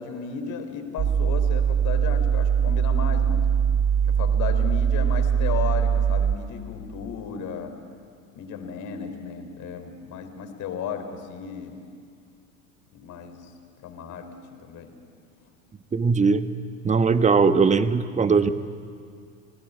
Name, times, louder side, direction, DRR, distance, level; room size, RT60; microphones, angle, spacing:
voice 1, 0.0-3.5 4.1-7.7 8.3-11.8 12.9-13.5 13.8-14.3 14.6-14.9, left 6 dB, 45° left, 7 dB, 3.8 m, -34 dB
sound 1, 1.0-6.4, right 7 dB, 35° right, 1.4 m, -22 dB
voice 2, 15.9-16.5 16.8-18.5, right 5 dB, 15° right, 11 dB, 1.2 m, -20 dB
27.5 x 19.0 x 8.6 m, 2.2 s
hypercardioid pair, 80°, 42 cm